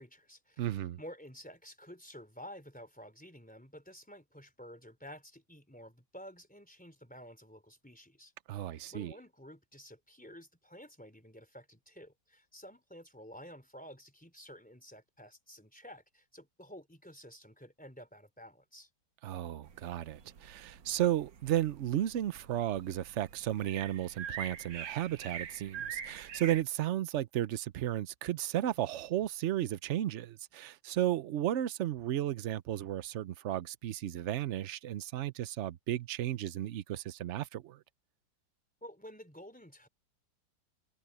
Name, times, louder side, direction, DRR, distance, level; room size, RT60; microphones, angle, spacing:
voice 1, 0.0-18.9 38.8-39.9, equal, 5° left, 3.9 m, -51 dB
voice 2, 0.6-1.0 8.5-9.1 19.2-37.8, right 12 dB, 65° right, 0.7 m, -34 dB
sound 1, 19.6-26.6, right 8 dB, 85° right, 2.0 m, -45 dB
omnidirectional pair, 1.9 m